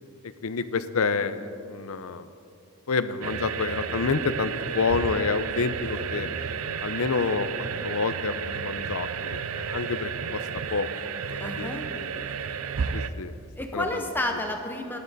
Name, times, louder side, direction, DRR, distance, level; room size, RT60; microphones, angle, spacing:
voice 1, 0.4-2.3 2.9-6.3 6.8-7.5 7.8-10.4 10.7-12.2 12.9-13.3 13.7-14.0, left 4 dB, 75° left, 12 dB, 0.6 m, -28 dB
sound 1, 3.2-13.1, right 6 dB, 70° right, 0.5 m, -32 dB
voice 2, 11.4-11.9 13.6-15.0, left 1 dB, 10° left, 4 dB, 0.7 m, -30 dB
15.0 x 11.5 x 4.0 m, 2.5 s
head